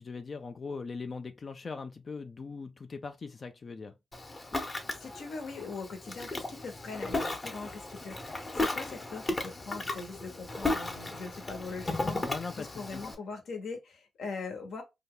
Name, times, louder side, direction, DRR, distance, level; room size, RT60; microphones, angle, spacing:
voice 1, 0.0-4.0 12.3-13.0, left 4 dB, 50° left, 0.3 m, -40 dB
Ocean, 4.1-13.1, left 2 dB, 30° left, 0.8 m, -35 dB
voice 2, 4.8-12.2 12.6-14.8, left 4 dB, 75° left, 0.9 m, -41 dB
2.7 x 2.2 x 3.5 m
cardioid pair, 60°, 0 cm